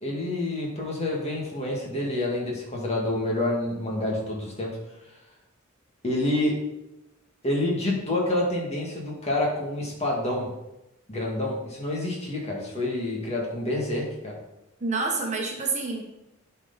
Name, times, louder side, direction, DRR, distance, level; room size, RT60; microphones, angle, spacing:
voice 1, 0.0-4.8 6.0-6.6 7.4-10.5 11.1-14.4, left 1 dB, 30° left, -2 dB, 2.1 m, -28 dB
voice 2, 14.8-16.0, right 3 dB, 35° right, -1 dB, 1.3 m, -27 dB
11.0 x 4.7 x 4.1 m, 0.93 s
head